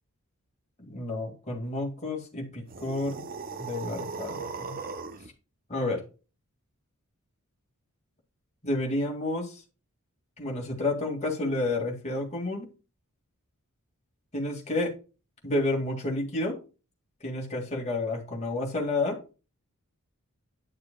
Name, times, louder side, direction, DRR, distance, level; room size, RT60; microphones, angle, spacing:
voice 1, 0.9-3.2 3.6-4.8 5.7-6.0 8.6-9.6 10.4-12.7 14.3-14.9 15.4-16.6 17.2-19.3, left 2 dB, 30° left, 0 dB, 2.3 m, -30 dB
sound 1, 2.7-5.3, right 4 dB, 40° right, 0.7 m, -38 dB
9.9 x 6.6 x 2.3 m, 0.32 s
head